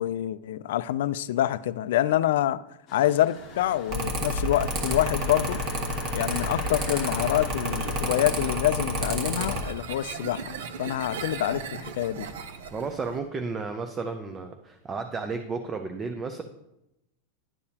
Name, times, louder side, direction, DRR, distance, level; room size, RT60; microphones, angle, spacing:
voice 1, 0.0-2.6 2.9-5.6 6.1-12.3, left 13 dB, 75° left, 0.3 m, -26 dB
sound 1, 2.9-8.6, left 8 dB, 35° left, 0.8 m, -45 dB
sound 2, 3.3-13.2, right 6 dB, 80° right, 0.8 m, -41 dB
Mechanical fan, 3.9-9.6, right 1 dB, 40° right, 1.4 m, -29 dB
voice 2, 12.7-16.4, right 4 dB, 20° right, 0.5 m, -33 dB
10.5 x 6.8 x 2.8 m
supercardioid pair, 145°, 0 cm